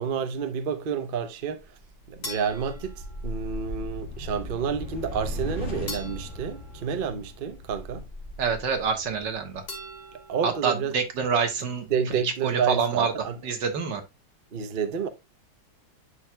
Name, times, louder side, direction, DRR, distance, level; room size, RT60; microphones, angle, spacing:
voice 1, 0.0-1.6 2.1-8.0 10.1-10.9 11.9-13.3 14.5-15.1, right 6 dB, 55° right, 0.6 m, -29 dB
sound 1, 1.6-10.0, left 1 dB, 40° left, 2.3 m, -38 dB
sound 2, 2.2-3.7 5.9-7.7 9.7-10.8, left 1 dB, 55° left, 3.0 m, -43 dB
voice 2, 8.4-9.6 10.4-13.1 13.4-14.0, right 6 dB, 70° right, 1.9 m, -27 dB
11.0 x 4.6 x 2.2 m
omnidirectional pair, 2.1 m